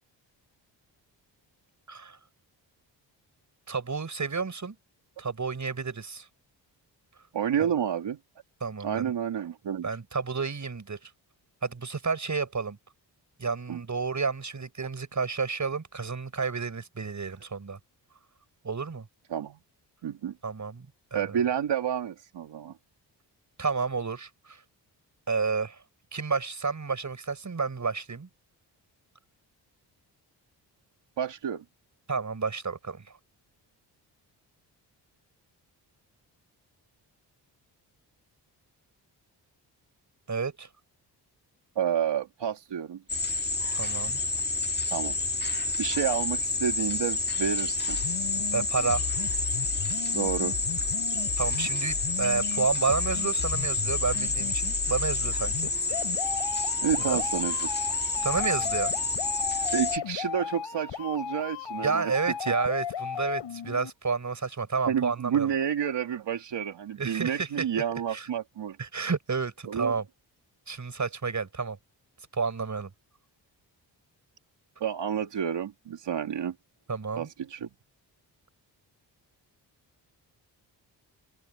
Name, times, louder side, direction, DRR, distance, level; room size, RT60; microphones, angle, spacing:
voice 1, 1.9-2.2 3.7-4.8 5.2-6.3 7.6-7.7 8.6-9.1 9.8-11.1 11.6-12.8 13.4-17.8 18.6-19.1 20.4-21.4 23.6-24.6 25.3-25.8 26.1-28.3 32.1-33.2 40.3-40.7 43.7-44.2 48.5-49.1 51.4-55.7 57.0-57.2 58.2-58.9 61.8-65.5 67.0-67.6 68.1-68.3 68.8-70.0 70.7-71.8 72.3-72.9 76.9-77.3, right 5 dB, 40° right, 6.2 m, -30 dB
voice 2, 7.3-8.2 8.8-9.9 13.7-13.8 19.3-19.6 20.0-20.3 21.1-22.7 31.2-31.6 41.8-43.0 44.9-45.2 45.8-48.0 50.1-50.6 56.8-57.7 59.7-62.1 62.5-62.6 64.8-68.8 69.7-69.9 74.8-76.5 77.2-77.7, right 8 dB, 75° right, 2.8 m, -30 dB
sound 1, 43.1-60.0, left 3 dB, 25° left, 1.7 m, -29 dB
sound 2, 47.9-63.9, left 8 dB, 80° left, 4.4 m, -36 dB
cardioid pair, 60°, 44 cm